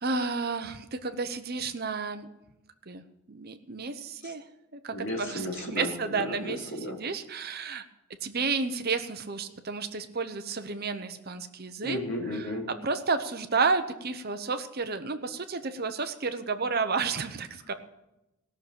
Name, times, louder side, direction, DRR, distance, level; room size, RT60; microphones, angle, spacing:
voice 1, 0.0-2.3 2.9-4.4 4.7-6.6 7.0-7.8 8.2-12.0 12.4-12.5 12.8-17.7, right 4 dB, 45° right, 9 dB, 0.8 m, -31 dB
voice 2, 4.9-7.0 11.8-12.7, left 1 dB, 55° left, -1 dB, 3.2 m, -34 dB
18.0 x 6.7 x 8.7 m, 0.95 s
head